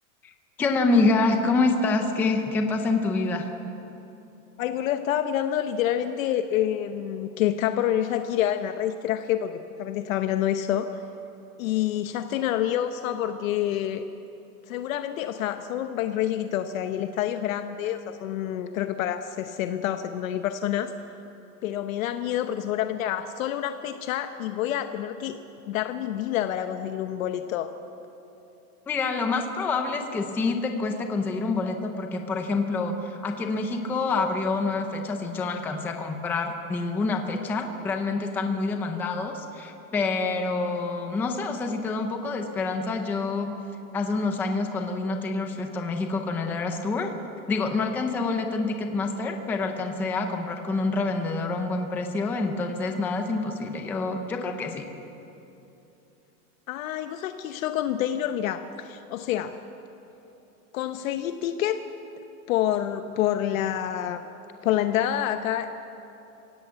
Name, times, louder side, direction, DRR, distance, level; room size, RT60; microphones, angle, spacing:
voice 1, 0.6-3.5 28.9-43.5 43.9-47.1 47.5-54.8, left 3 dB, 5° left, 4 dB, 0.5 m, -27 dB
voice 2, 4.6-10.9 11.6-14.1 14.7-20.9 21.6-25.4 25.7-27.7 56.7-59.6 60.7-61.8 62.5-64.3 64.6-65.7, left 11 dB, 60° left, 8 dB, 1.0 m, -27 dB
27.0 x 16.5 x 8.2 m, 3.0 s
supercardioid pair, 165°, 46 cm